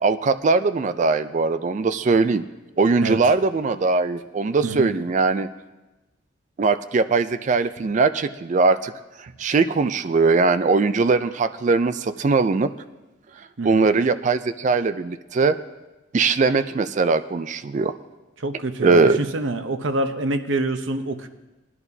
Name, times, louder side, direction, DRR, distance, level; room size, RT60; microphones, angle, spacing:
voice 1, 0.0-2.4 2.8-5.5 6.6-8.9 9.2-12.7 13.6-15.6 16.1-17.9 18.8-19.3, right 4 dB, 40° right, 11 dB, 0.4 m, -20 dB
voice 2, 18.4-21.3, right 2 dB, 70° right, 8 dB, 0.8 m, -26 dB
19.5 x 11.0 x 2.7 m, 1.1 s
head